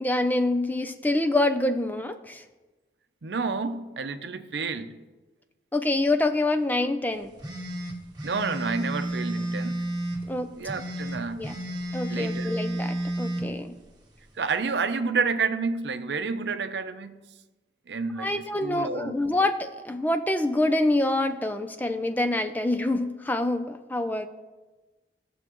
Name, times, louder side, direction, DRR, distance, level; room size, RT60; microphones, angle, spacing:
voice 1, 0.0-2.4 5.7-7.3 10.3-10.5 11.4-11.6 11.9-13.7 18.2-24.3, left 2 dB, 10° left, 0.4 m, -26 dB
voice 2, 3.2-5.0 8.2-9.9 10.5-11.5 12.1-12.5 14.4-17.2 17.9-19.2, right 4 dB, 80° right, 0.6 m, -30 dB
sound 1, 7.4-10.2 10.6-13.4, right 1 dB, 25° right, 1.2 m, -31 dB
16.5 x 7.1 x 3.0 m
head